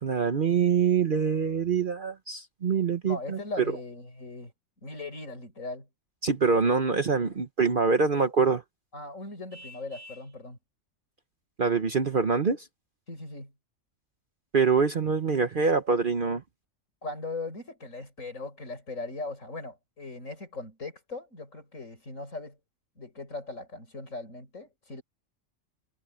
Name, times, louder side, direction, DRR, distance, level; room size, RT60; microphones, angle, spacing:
voice 1, 0.0-3.6 6.2-8.6 11.6-12.7 14.5-16.4, right 5 dB, 45° right, 1.0 m, -25 dB
voice 2, 3.0-4.5 4.8-5.9 8.9-10.6 13.1-13.5 17.0-22.6 23.0-25.0, left 3 dB, 80° left, 6.0 m, -39 dB
Vehicle horn car horn honking, 9.5-10.3, left 1 dB, 30° right, 7.6 m, -48 dB
omnidirectional pair, 1.3 m